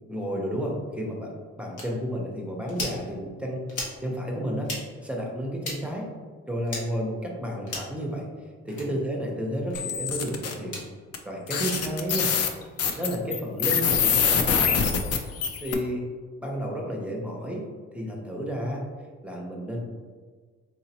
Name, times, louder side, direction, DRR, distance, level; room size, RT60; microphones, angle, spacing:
voice 1, 0.1-4.7 5.0-6.1 6.5-8.3 8.6-10.7 11.2-12.3 12.9-14.8 15.6-16.0 16.4-17.6 17.9-18.8 19.2-19.8, equal, 5° right, -1 dB, 0.7 m, -31 dB
sound 1, 1.8-1.9 2.7-3.0 3.7-4.0 4.6-4.8 5.6-5.8 6.7-6.8 7.7-8.0 8.7-8.9 9.7-9.8 10.6-10.9 11.7-11.8 12.8-13.0, left 2 dB, 75° left, 1.2 m, -35 dB
sound 2, 9.7-10.5 11.1-11.2 11.5-15.7, left 7 dB, 55° left, 0.5 m, -24 dB
4.1 x 2.8 x 2.9 m, 1.5 s
cardioid pair, 90°, 30 cm